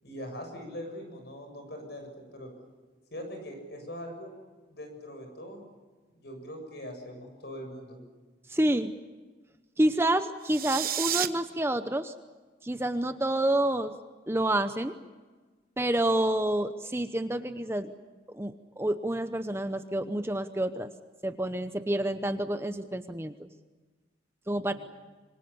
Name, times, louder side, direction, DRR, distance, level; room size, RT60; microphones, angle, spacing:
voice 1, 0.0-2.5 3.1-4.3 4.7-5.7 6.1-8.0 24.7-24.8, equal, 60° left, 5 dB, 7.3 m, -42 dB
voice 2, 8.5-8.9 9.8-12.1 12.6-14.0 14.3-14.9 15.8-17.9 18.3-20.9 21.2-23.5 24.5-24.7, right 1 dB, 15° right, 9 dB, 0.8 m, -28 dB
sound 1, 10.4-11.3, right 11 dB, 50° right, 1.1 m, -30 dB
26.5 x 24.0 x 7.0 m, 1.3 s
head